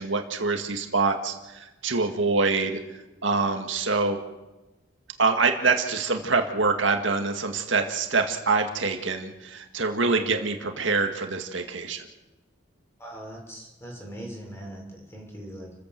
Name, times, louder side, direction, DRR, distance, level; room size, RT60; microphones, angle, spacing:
voice 1, 0.0-2.8 3.2-4.2 5.2-12.1, right 4 dB, 70° right, 4 dB, 2.1 m, -25 dB
voice 2, 13.0-15.7, right 1 dB, 15° left, -1 dB, 6.9 m, -40 dB
29.5 x 15.5 x 7.8 m, 1.1 s
head